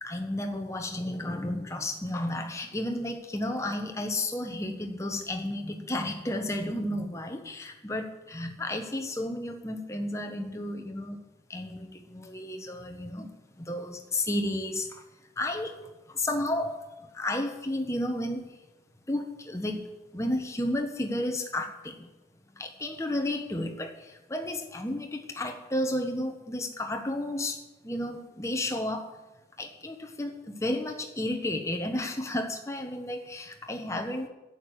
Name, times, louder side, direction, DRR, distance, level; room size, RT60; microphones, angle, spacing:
voice 1, 0.0-11.2 11.5-13.3 13.6-15.0 15.4-15.8 16.1-16.8 17.1-18.5 19.1-19.8 20.1-22.1 22.6-29.2 29.6-34.3, left 1 dB, 15° left, 4 dB, 1.2 m, -32 dB
11.0 x 6.7 x 9.5 m, 1.0 s
head